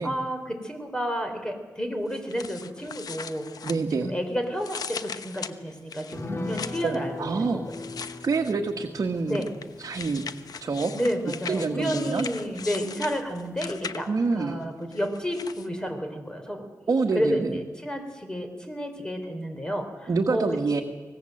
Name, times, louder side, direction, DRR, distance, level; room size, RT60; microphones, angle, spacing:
voice 1, 0.0-3.5 3.9-7.9 9.3-9.5 10.9-16.7 17.1-20.4, equal, 10° left, 6 dB, 4.0 m, -31 dB
sound 1, 2.1-4.2 4.6-7.0 7.7-8.7 9.3-14.3 14.9-15.7, left 6 dB, 75° left, 1.0 m, -39 dB
voice 2, 3.6-4.1 6.8-7.6 8.2-9.5 9.8-10.2 10.6-10.9 11.5-12.2 14.1-14.6 16.9-17.6 20.1-20.8, right 4 dB, 55° right, 1 dB, 1.6 m, -26 dB
sound 2, 6.1-12.9 13.2-13.3 13.6-13.8, left 3 dB, 40° left, 1.9 m, -40 dB
24.5 x 19.0 x 7.9 m, 1.3 s
wide cardioid pair, 90°, 7 cm